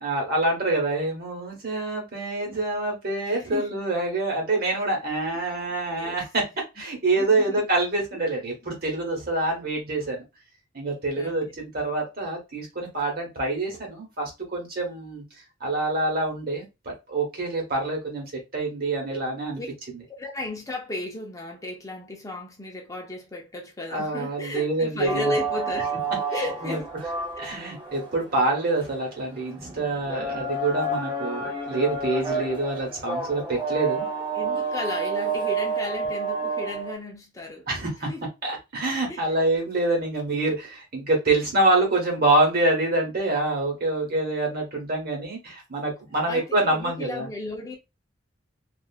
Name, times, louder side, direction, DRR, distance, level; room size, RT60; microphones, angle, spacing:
voice 1, 0.0-6.4 6.8-10.2 10.7-15.2 15.6-19.6 23.9-25.3 26.6-26.8 27.4-34.0 37.7-38.1 38.4-47.3, right 2 dB, 55° right, 1.2 m, -26 dB
voice 2, 3.2-3.8 5.3-5.5 6.0-6.5 7.2-7.7 8.3-8.4 11.2-11.4 19.6-19.7 20.1-26.0 26.3-26.9 27.4-27.7 34.3-38.2 39.1-39.3 46.3-47.8, left 2 dB, 20° left, 0.5 m, -34 dB
sound 1, 25.1-36.9, right 3 dB, 25° right, 0.7 m, -30 dB
2.8 x 2.4 x 2.4 m
head